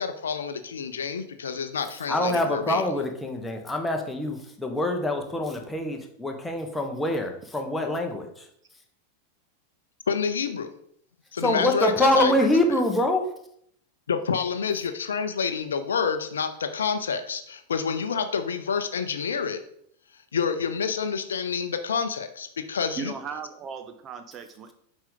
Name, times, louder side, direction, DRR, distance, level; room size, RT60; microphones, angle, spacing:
voice 1, 0.0-2.8 10.1-10.7 11.3-12.6 14.1-19.6 20.3-23.1, left 6 dB, 70° left, 9 dB, 0.6 m, -28 dB
voice 2, 2.1-8.5 11.4-13.3, left 1 dB, 5° left, 3 dB, 1.1 m, -25 dB
voice 3, 23.0-24.7, right 6 dB, 30° right, 8 dB, 0.6 m, -37 dB
7.2 x 5.0 x 3.8 m, 0.69 s
figure-of-eight pair, 90°, 0 cm